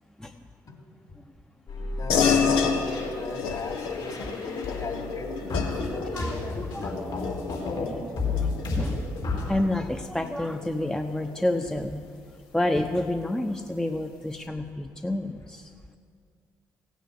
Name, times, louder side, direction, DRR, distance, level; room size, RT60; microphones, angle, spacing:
sound 1, 1.7-5.2 5.5-7.8 8.2-9.4, left 3 dB, 65° left, 4.4 m, -32 dB
voice 1, 1.9-5.4 5.8-6.7, left 3 dB, 50° left, 2 dB, 3.2 m, -36 dB
sound 2, 2.1-12.0, left 6 dB, 80° left, 1.2 m, -30 dB
voice 2, 6.1-7.0 8.4-9.0 9.5-12.0 12.5-15.7, left 1 dB, 5° left, 5 dB, 0.9 m, -29 dB
16.0 x 9.2 x 8.4 m, 2.2 s
hypercardioid pair, 45°, 8 cm